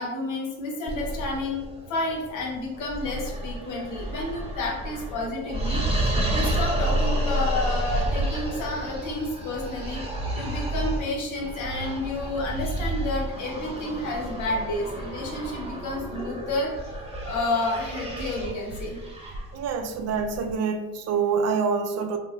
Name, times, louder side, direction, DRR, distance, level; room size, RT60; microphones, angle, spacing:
voice 1, 0.0-1.6 1.9-5.8 6.3-10.0 10.4-19.0, left 2 dB, 80° left, -1 dB, 0.9 m, -30 dB
sound 1, 0.9-20.5, right 1 dB, 20° right, 0.8 m, -30 dB
voice 2, 19.5-22.2, right 5 dB, 55° right, 7 dB, 0.4 m, -26 dB
2.7 x 2.1 x 3.7 m, 1.1 s
cardioid pair, 90°, 30 cm